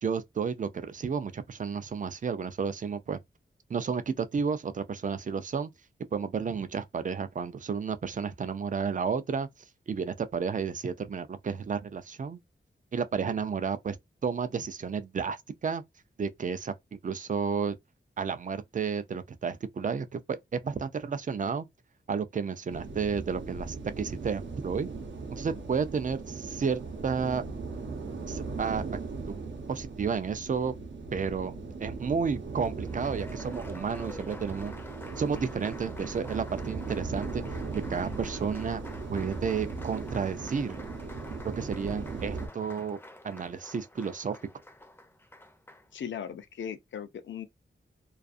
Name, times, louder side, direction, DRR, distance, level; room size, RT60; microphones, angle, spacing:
voice 1, 0.0-3.2 3.7-5.7 6.1-9.5 9.9-12.4 12.9-14.0 14.2-15.8 16.2-17.8 18.2-21.7 22.1-24.9 25.3-27.4 28.3-28.8 29.3-29.4 29.7-30.7 31.1-31.5 31.8-34.7 35.2-37.4 37.7-38.8 39.1-40.8 41.6-43.0 43.2-44.4, right 6 dB, 40° right, 0.4 m, -32 dB
sound 1, 22.7-42.5, right 4 dB, 70° right, 0.8 m, -38 dB
Applause, 32.6-45.9, left 1 dB, 10° left, 0.5 m, -48 dB
voice 2, 45.9-47.5, left 8 dB, 75° left, 0.4 m, -38 dB
2.4 x 2.4 x 2.4 m
wide cardioid pair, 120°, 20 cm